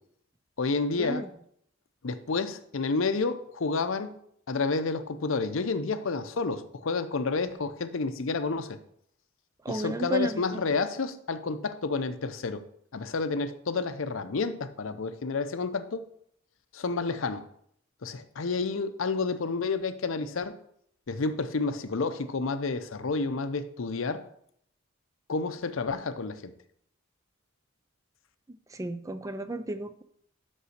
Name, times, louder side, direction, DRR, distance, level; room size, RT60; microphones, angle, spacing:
voice 1, 0.6-1.3 2.0-4.1 4.5-8.8 9.7-12.6 12.9-16.0 16.7-17.4 18.0-20.5 21.1-24.2 25.3-26.5, left 4 dB, 70° left, 0.6 m, -30 dB
voice 2, 9.6-10.6 28.5-30.0, right 1 dB, 15° right, 0.3 m, -33 dB
6.1 x 5.5 x 6.4 m
head